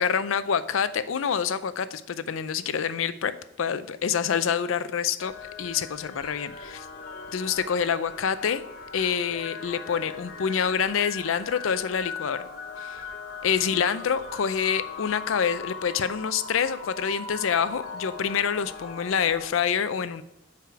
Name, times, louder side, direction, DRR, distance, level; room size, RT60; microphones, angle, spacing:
voice 1, 0.0-3.3 3.6-5.3 5.6-6.9 7.3-8.6 8.9-12.5 12.8-13.0 13.4-20.2, left 7 dB, 85° left, 14 dB, 0.4 m, -27 dB
sound 1, 5.2-19.5, left 5 dB, 45° left, 0.8 m, -40 dB
6.8 x 4.8 x 4.6 m, 0.84 s
head